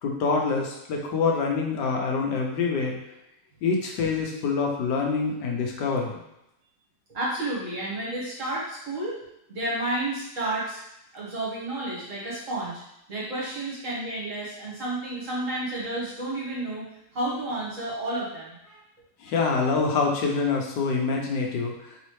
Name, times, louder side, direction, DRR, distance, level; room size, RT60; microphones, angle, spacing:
voice 1, 0.0-2.9 3.6-6.2 19.2-21.7, left 4 dB, 90° left, 1 dB, 1.4 m, -25 dB
voice 2, 7.1-9.2 9.5-10.8 11.1-12.8 13.1-16.9 17.1-18.8 19.2-19.3, right 1 dB, 50° right, -6 dB, 1.7 m, -31 dB
4.1 x 3.6 x 3.2 m, 0.85 s
omnidirectional pair, 1.8 m